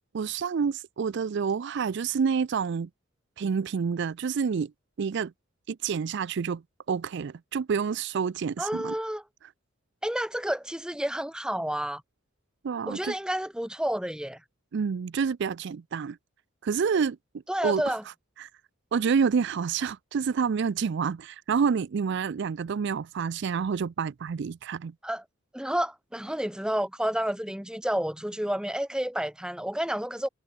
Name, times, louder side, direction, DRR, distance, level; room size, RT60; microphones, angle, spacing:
voice 1, 0.1-2.9 3.4-4.7 5.0-5.3 5.7-6.6 6.9-8.9 12.6-13.1 14.7-16.2 16.6-17.2 17.6-17.9 18.4-18.5 18.9-24.9, right 6 dB, 55° right, 0.4 m, -28 dB
voice 2, 8.6-9.2 10.0-12.0 12.9-14.4 17.5-18.0 25.0-25.2 25.5-30.3, equal, 5° right, 1.1 m, -30 dB
head